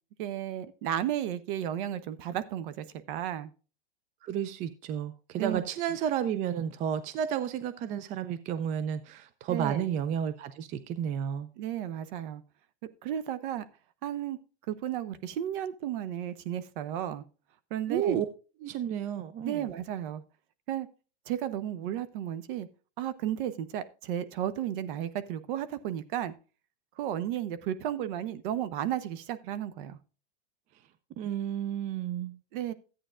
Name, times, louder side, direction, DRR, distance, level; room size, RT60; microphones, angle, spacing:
voice 1, 0.2-3.5 5.4-5.6 9.5-9.9 11.6-12.4 13.0-13.6 14.0-14.4 14.7-17.2 17.7-18.2 19.4-20.2 20.7-20.9 21.3-22.7 23.0-26.3 27.0-30.0 32.5-32.7, right 11 dB, 50° right, 1.0 m, -33 dB
voice 2, 4.2-11.5 17.9-18.3 18.6-19.6 31.2-32.3, right 9 dB, 25° right, 0.5 m, -31 dB
14.0 x 8.8 x 2.5 m
hypercardioid pair, 135°, 32 cm